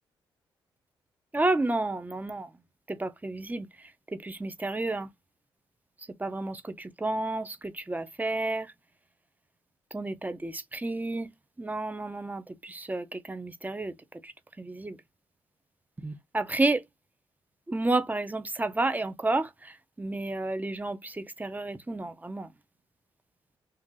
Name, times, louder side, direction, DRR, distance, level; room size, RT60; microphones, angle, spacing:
voice 1, 1.3-2.5 2.9-3.7 4.1-5.1 6.2-8.7 9.9-11.3 11.6-13.9 14.2-14.3 14.6-15.0 16.0-16.8 17.7-22.5, right 2 dB, 15° right, 0.7 m, -31 dB
2.8 x 2.5 x 3.7 m
supercardioid pair, 60°, 10 cm